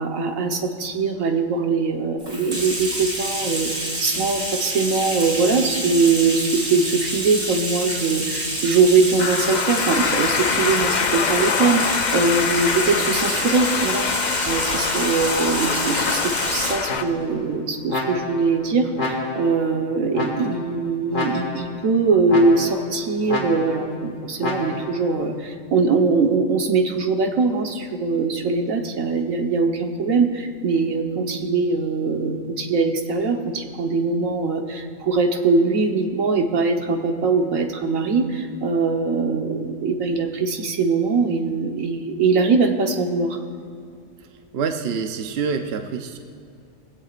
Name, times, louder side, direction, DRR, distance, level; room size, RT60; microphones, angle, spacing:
voice 1, 0.0-3.7 4.0-43.4, right 4 dB, 75° right, 4 dB, 1.6 m, -22 dB
Bathtub (filling or washing), 2.2-16.9, right 1 dB, 25° right, 2.5 m, -28 dB
sound 1, 9.2-17.0, left 7 dB, 85° left, 0.4 m, -24 dB
sound 2, 16.9-17.4 17.9-18.5 19.0-19.6 20.1-20.7 21.1-21.8 22.3-22.9 23.3-23.9 24.4-25.0, left 2 dB, 65° left, 2.6 m, -29 dB
voice 2, 44.5-46.2, right 5 dB, 55° right, 5 dB, 1.0 m, -26 dB
21.0 x 16.0 x 2.5 m, 2.3 s
omnidirectional pair, 1.4 m